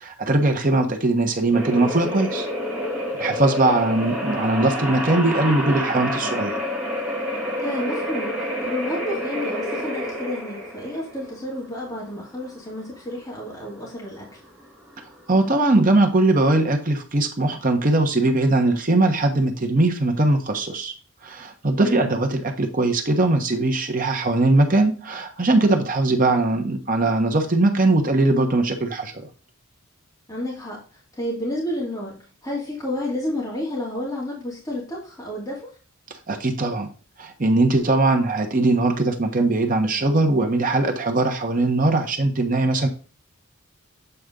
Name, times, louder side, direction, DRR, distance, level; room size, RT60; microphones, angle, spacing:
voice 1, 0.0-2.5 3.2-6.5 15.3-20.9 21.2-29.1 36.3-36.9 37.2-42.9, right 2 dB, 40° right, 3 dB, 1.2 m, -20 dB
sound 1, 1.5-16.1, equal, 5° right, 2.3 m, -28 dB
voice 2, 7.6-14.2 21.8-22.1 30.3-30.8 31.2-32.2 32.4-35.6, left 1 dB, 15° left, -5 dB, 2.5 m, -30 dB
8.1 x 4.3 x 3.8 m, 0.37 s
head